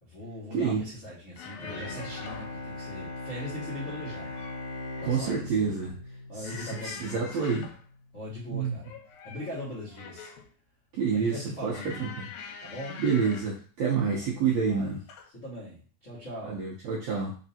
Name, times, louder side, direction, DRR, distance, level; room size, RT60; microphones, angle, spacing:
voice 1, 0.0-4.4 5.0-5.8 6.3-7.2 8.1-8.9 9.2-10.3 11.1-12.2 12.6-13.0 14.0-14.3 14.6-14.9 15.3-16.6, left 1 dB, 40° left, -10 dB, 0.9 m, -40 dB
sound 1, 1.2-2.6 4.0-4.6 5.0-5.5 6.4-7.8 8.8-10.5 11.7-13.6 14.4-14.7 15.1-15.3, left 5 dB, 85° left, 2.4 m, -44 dB
Bowed string instrument, 1.6-7.2, left 2 dB, 60° left, 2.3 m, -39 dB
voice 2, 5.0-5.9 6.4-7.7 8.5-8.8 10.9-12.3 13.0-15.0 16.4-17.3, right 5 dB, 70° right, -4 dB, 1.6 m, -28 dB
5.3 x 3.5 x 2.8 m, 0.39 s
omnidirectional pair, 4.2 m